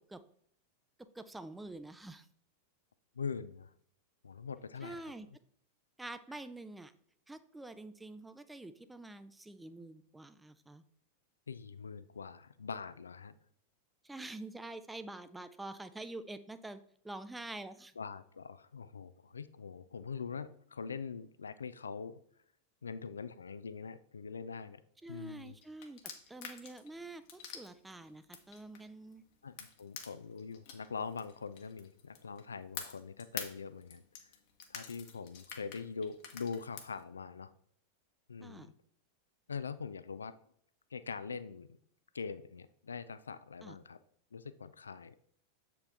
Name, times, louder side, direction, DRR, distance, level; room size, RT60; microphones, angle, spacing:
voice 1, 1.1-2.3 4.8-5.3 6.0-6.9 7.3-10.8 14.0-16.8 17.0-17.9 25.0-26.0 26.3-29.2 38.4-38.7 43.6-43.8, right 2 dB, 5° right, 11 dB, 0.5 m, -47 dB
voice 2, 3.2-3.7 4.2-5.0 11.5-13.3 18.0-22.2 22.8-24.8 25.1-25.6 29.4-34.0 34.7-37.5 38.3-38.7 39.5-40.4 40.9-41.8 42.1-44.0 44.3-45.2, left 5 dB, 75° left, 14 dB, 0.3 m, -43 dB
sound 1, 25.4-29.1 29.6-32.4 32.7-37.0, left 8 dB, 50° left, 1.0 m, -47 dB
7.5 x 5.0 x 3.4 m, 0.63 s
figure-of-eight pair, 90°, 0 cm